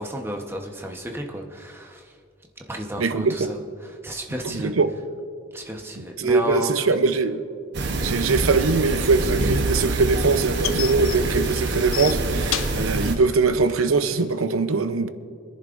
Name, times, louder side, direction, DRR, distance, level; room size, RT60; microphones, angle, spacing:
voice 1, 0.0-2.1 2.7-4.7 5.5-6.8, equal, 10° right, 1.0 m, -32 dB
voice 2, 3.0-3.5 4.4-4.9 6.0-7.4 8.0-15.1, right 4 dB, 85° right, 0.7 m, -22 dB
sound 1, 7.7-13.2, right 2 dB, 55° right, 1.0 m, -25 dB
sound 2, 9.4-14.4, left 13 dB, 70° left, 0.4 m, -33 dB
25.5 x 10.5 x 2.6 m
head